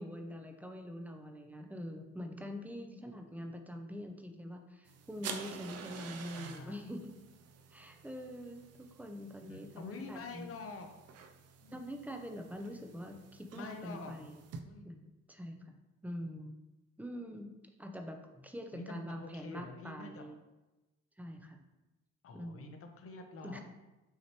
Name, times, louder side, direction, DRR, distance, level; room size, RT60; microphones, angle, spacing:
voice 1, 0.0-7.1 7.7-10.5 11.7-14.4 14.8-15.7 16.0-16.6 17.0-17.5 17.8-20.4 21.2-21.6 22.3-22.7 23.4-23.6, equal, 5° right, 4 dB, 0.5 m, -44 dB
sound 1, 4.9-14.6, right 6 dB, 55° right, 0.5 m, -50 dB
voice 2, 6.3-6.8 9.5-10.9 11.2-11.3 11.6-11.8 13.5-14.3 14.6-14.9 18.7-20.3 22.2-23.6, left 3 dB, 50° left, 5 dB, 0.7 m, -47 dB
5.6 x 3.0 x 2.9 m, 1.1 s
cardioid pair, 90°, 30 cm